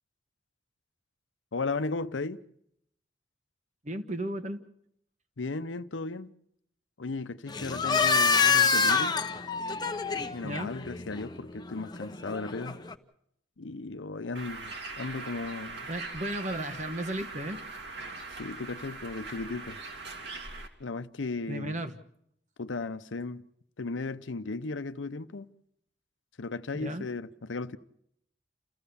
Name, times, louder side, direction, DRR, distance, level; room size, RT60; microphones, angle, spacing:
voice 1, 1.5-2.4 5.4-6.3 7.0-9.1 10.2-12.8 13.6-15.9 18.4-19.8 20.8-21.8 22.6-23.5 23.8-25.5 26.4-27.8, left 3 dB, 85° left, 0.8 m, -36 dB
voice 2, 3.8-4.6 10.4-10.7 15.9-17.6 21.5-22.0 26.7-27.1, right 1 dB, 40° right, 1.4 m, -34 dB
sound 1, 7.5-12.9, left 5 dB, 25° left, 0.8 m, -27 dB
Bird, 14.3-20.7, right 3 dB, 65° right, 2.4 m, -41 dB
29.0 x 15.0 x 7.0 m
head